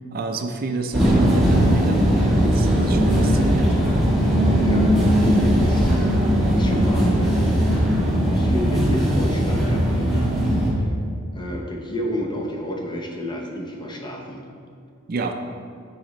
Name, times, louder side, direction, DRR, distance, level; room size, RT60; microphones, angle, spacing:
voice 1, 0.1-2.0 2.4-3.8 15.1-15.3, right 3 dB, 45° right, 5 dB, 0.4 m, -27 dB
sound 1, 0.9-10.7, equal, ahead, 1.5 m, -19 dB
voice 2, 4.6-6.1 6.5-7.4 8.3-10.6 11.3-14.4, equal, 20° left, 1 dB, 0.7 m, -30 dB
8.6 x 4.9 x 3.1 m, 2.3 s
head